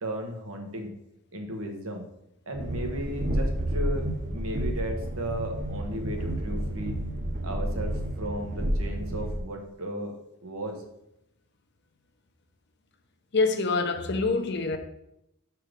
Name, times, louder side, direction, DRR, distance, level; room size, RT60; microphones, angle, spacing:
voice 1, 0.0-0.9 1.3-2.0 2.5-7.0 7.4-10.8, right 1 dB, 75° right, 1.3 m, -35 dB
Train, 2.5-9.4, right 1 dB, 35° right, 0.7 m, -30 dB
voice 2, 13.3-14.8, left 3 dB, 50° left, 0.7 m, -25 dB
6.2 x 4.5 x 5.1 m
head